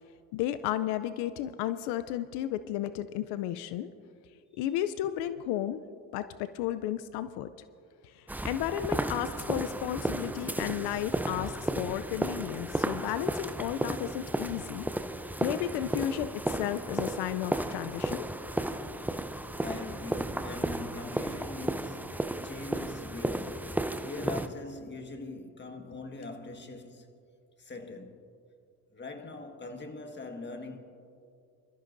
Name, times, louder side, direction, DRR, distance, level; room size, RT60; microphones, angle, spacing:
voice 1, 0.3-3.9 4.6-5.8 6.1-7.5 8.0-14.9 15.4-18.3, left 12 dB, 85° left, 0.5 m, -33 dB
sound 1, 8.3-24.5, right 1 dB, 5° right, 0.5 m, -34 dB
voice 2, 19.6-27.1 27.6-28.3 28.9-30.8, left 3 dB, 30° left, 1.6 m, -42 dB
24.0 x 13.5 x 2.6 m
supercardioid pair, 80°, 38 cm